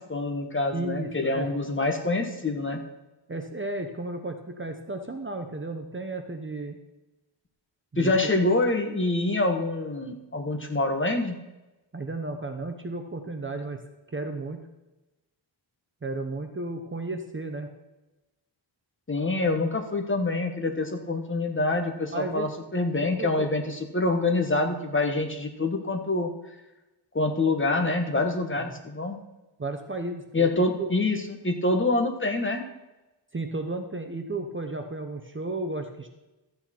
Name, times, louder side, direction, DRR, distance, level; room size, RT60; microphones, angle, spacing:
voice 1, 0.0-2.8 8.0-11.4 19.1-26.3 27.1-29.2 30.3-32.6, left 2 dB, 25° left, 4 dB, 1.3 m, -26 dB
voice 2, 0.7-1.5 3.3-6.8 7.9-8.3 11.9-13.8 14.1-14.6 16.0-17.7 22.1-22.5 23.0-23.5 28.7-28.8 29.6-30.9 33.3-36.1, right 2 dB, 25° right, 5 dB, 0.9 m, -33 dB
13.0 x 8.7 x 4.4 m, 1.0 s
wide cardioid pair, 145°, 48 cm